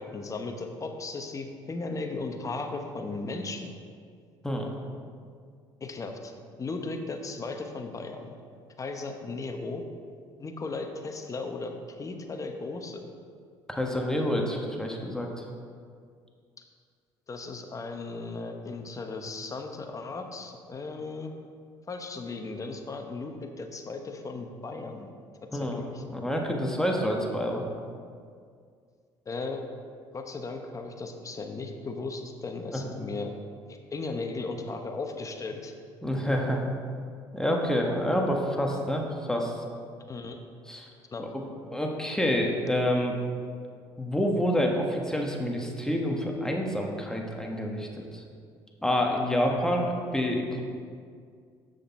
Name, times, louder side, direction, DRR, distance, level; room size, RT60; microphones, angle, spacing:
voice 1, 0.0-3.7 5.8-6.3 6.6-8.3 8.8-9.8 10.4-13.1 17.3-21.3 21.9-25.1 25.5-26.0 29.3-29.6 30.1-33.3 33.7-35.7 40.1-40.4 41.1-41.2, left 3 dB, 30° left, 4 dB, 1.0 m, -36 dB
voice 2, 13.7-15.4 25.5-25.8 26.1-27.6 32.7-32.8 36.0-36.6 37.3-39.6 40.7-40.9 41.2-41.3 41.7-43.1 44.0-48.2 48.8-50.6, equal, 5° left, 0 dB, 1.4 m, -28 dB
7.8 x 6.5 x 4.3 m, 2.2 s
supercardioid pair, 70°, 11 cm